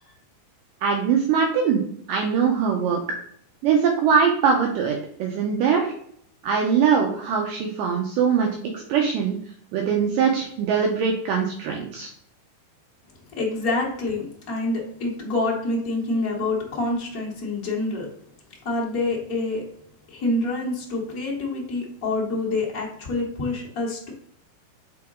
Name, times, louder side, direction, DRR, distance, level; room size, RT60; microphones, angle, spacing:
voice 1, 0.8-1.8 2.1-3.0 3.6-5.9 6.4-9.4 9.7-12.1, right 6 dB, 75° right, 2 dB, 2.2 m, -22 dB
voice 2, 13.3-18.1 18.6-19.7 20.1-24.1, left 2 dB, 75° left, -3 dB, 0.8 m, -27 dB
7.8 x 4.1 x 3.6 m, 0.65 s
omnidirectional pair, 4.4 m